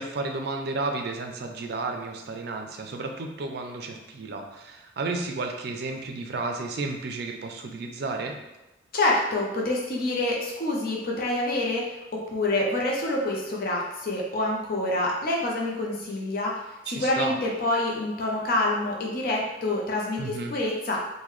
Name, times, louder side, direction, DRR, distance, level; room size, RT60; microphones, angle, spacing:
voice 1, 0.0-8.4 16.9-17.4 20.2-20.5, right 3 dB, 55° right, 3 dB, 0.4 m, -32 dB
voice 2, 8.9-16.6 16.9-21.0, left 2 dB, 50° left, -2 dB, 0.6 m, -27 dB
3.7 x 2.2 x 3.1 m, 0.99 s
head